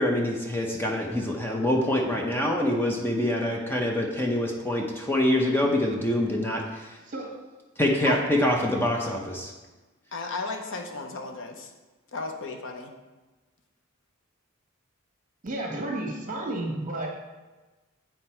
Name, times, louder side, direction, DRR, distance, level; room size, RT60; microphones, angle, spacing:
voice 1, 0.0-7.0 7.8-9.5, left 1 dB, 10° left, 0 dB, 0.7 m, -25 dB
voice 2, 10.1-11.7 12.1-12.9, left 3 dB, 65° left, 4 dB, 0.8 m, -34 dB
voice 3, 15.4-17.1, right 1 dB, 40° right, 0 dB, 1.4 m, -32 dB
7.9 x 4.5 x 4.3 m, 1.2 s
head